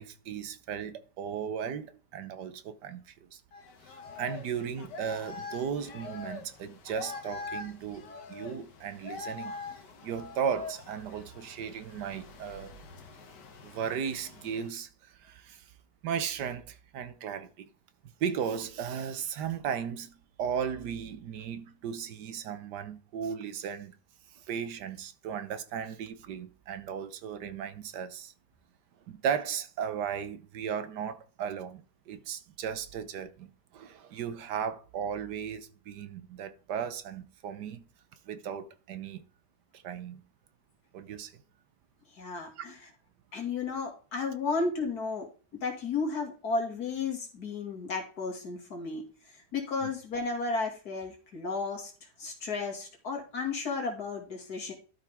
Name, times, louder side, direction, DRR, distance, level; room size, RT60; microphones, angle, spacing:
voice 1, 0.0-3.4 4.2-9.6 10.0-12.7 13.6-15.7 16.0-17.7 18.2-23.9 24.3-28.3 29.1-37.8 38.3-39.2 39.7-40.2 40.9-41.3 42.6-42.7, right 7 dB, 80° right, 1.5 m, -36 dB
sound 1, 3.5-14.7, left 3 dB, 85° left, 2.0 m, -44 dB
voice 2, 42.1-42.7 43.3-49.1 49.5-51.9 52.2-54.7, left 4 dB, 65° left, 2.7 m, -33 dB
12.5 x 5.4 x 3.5 m
omnidirectional pair, 1.8 m